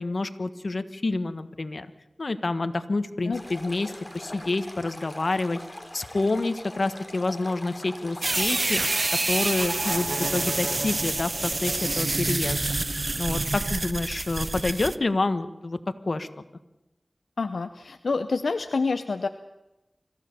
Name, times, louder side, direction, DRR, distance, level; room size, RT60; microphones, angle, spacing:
voice 1, 0.0-1.9 2.2-5.6 5.9-8.8 9.3-12.6 13.2-15.8 16.1-16.3, left 2 dB, 65° left, 10 dB, 1.4 m, -28 dB
Stream, 3.3-8.6, left 1 dB, 15° left, 3.6 m, -42 dB
sound 1, 8.2-15.0, right 2 dB, 55° right, 0.8 m, -27 dB
voice 2, 17.4-19.3, left 4 dB, 90° left, 8 dB, 0.7 m, -27 dB
25.5 x 15.0 x 6.9 m, 0.97 s
cardioid pair, 40°, 0 cm